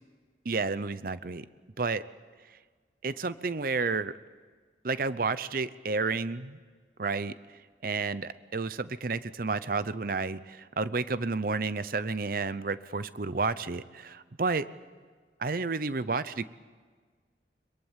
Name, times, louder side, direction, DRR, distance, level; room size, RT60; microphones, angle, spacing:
voice 1, 0.4-1.4 1.8-2.1 3.0-4.2 4.8-6.6 7.0-7.3 7.8-14.7 15.4-16.4, right 4 dB, 50° right, 15 dB, 0.7 m, -31 dB
23.0 x 22.5 x 7.4 m, 1.5 s
head